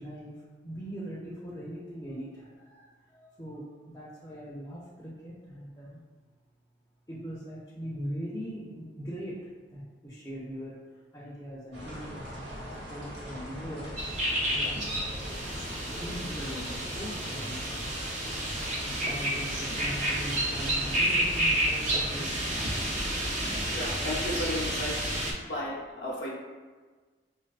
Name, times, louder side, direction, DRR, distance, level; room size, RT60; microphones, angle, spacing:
voice 1, 0.0-6.0 7.1-14.8 15.8-17.9 18.8-22.8, equal, 20° left, -7 dB, 0.5 m, -41 dB
sound 1, 11.7-22.2, equal, 75° right, 0.9 m, -41 dB
sound 2, 14.0-25.3, right 1 dB, 40° right, 0.5 m, -30 dB
voice 2, 23.7-25.1 25.5-26.3, left 1 dB, 85° left, -5 dB, 0.6 m, -34 dB
4.0 x 2.2 x 2.3 m, 1.4 s
head